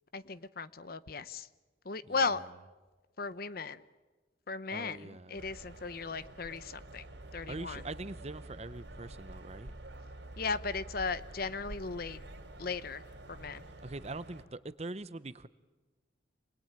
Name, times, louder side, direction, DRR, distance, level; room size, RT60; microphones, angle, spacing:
voice 1, 0.1-1.5 1.8-2.4 3.2-3.8 4.5-7.0 7.3-7.8 10.4-12.2 12.6-13.0 13.3-13.6, left 4 dB, 50° left, 0.9 m, -36 dB
voice 2, 2.1-2.4 4.7-5.4 7.5-9.7 13.8-15.5, right 2 dB, 35° right, 0.8 m, -43 dB
sound 1, 5.4-14.4, right 1 dB, 65° right, 3.4 m, -48 dB
27.5 x 21.5 x 9.0 m
head